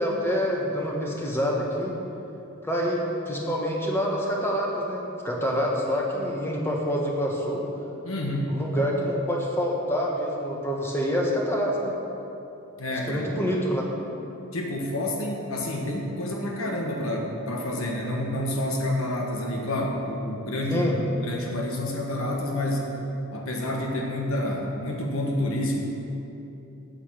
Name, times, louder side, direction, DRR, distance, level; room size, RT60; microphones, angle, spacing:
voice 1, 0.0-2.0 2.6-7.6 8.5-12.0 13.0-13.8 20.7-21.0, equal, 10° left, -2 dB, 1.5 m, -26 dB
voice 2, 8.0-8.6 12.8-13.3 14.5-22.9 23.3-25.8, left 1 dB, 70° left, 0 dB, 1.3 m, -28 dB
8.8 x 8.6 x 7.3 m, 2.9 s
head